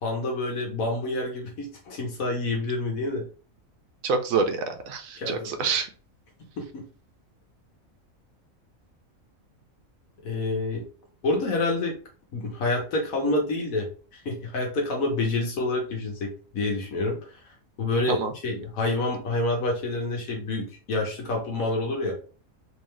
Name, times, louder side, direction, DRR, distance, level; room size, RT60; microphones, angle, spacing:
voice 1, 0.0-3.3 5.2-5.7 6.6-6.8 10.2-10.8 11.2-12.0 12.3-22.1, left 2 dB, 80° left, 0 dB, 1.4 m, -28 dB
voice 2, 4.0-5.9 18.1-18.3, right 5 dB, 80° right, 6 dB, 1.1 m, -26 dB
3.7 x 3.1 x 3.1 m, 0.38 s
omnidirectional pair, 1.4 m